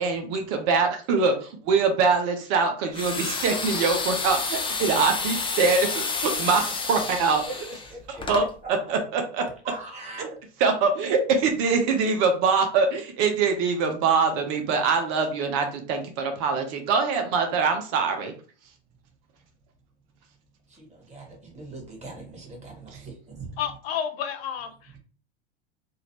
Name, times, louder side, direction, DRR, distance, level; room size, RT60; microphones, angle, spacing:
voice 1, 0.0-7.4 8.3-8.4 8.9-9.4 10.2-10.3 10.6-18.3, right 4 dB, 50° right, 5 dB, 0.8 m, -23 dB
sound 1, 2.9-8.5, left 4 dB, 15° left, 0.7 m, -30 dB
voice 2, 7.9-8.2 8.6-8.9 9.6-10.2 20.7-23.6, right 3 dB, 20° right, -1 dB, 1.8 m, -41 dB
voice 3, 23.6-25.0, left 8 dB, 65° left, 7 dB, 0.7 m, -31 dB
4.0 x 2.5 x 2.9 m, 0.40 s
hypercardioid pair, 100°, 33 cm